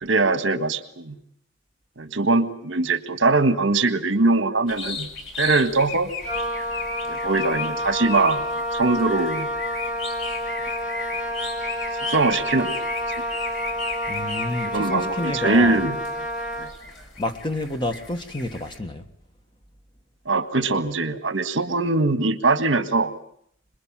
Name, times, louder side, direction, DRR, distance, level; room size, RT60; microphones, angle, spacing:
voice 1, 0.0-1.2 2.0-5.1 5.4-6.1 7.1-9.5 12.0-12.8 14.7-16.0 16.6-16.7 20.2-23.1, right 3 dB, 65° right, 1.6 m, -22 dB
sound 1, 4.7-18.8, left 4 dB, 75° left, 5.1 m, -36 dB
Wind instrument woodwind instrument, 6.2-16.8, equal, 40° left, 1.7 m, -29 dB
voice 2, 14.1-15.8 17.2-19.1, left 1 dB, 25° left, 1.4 m, -29 dB
26.5 x 21.0 x 7.4 m
head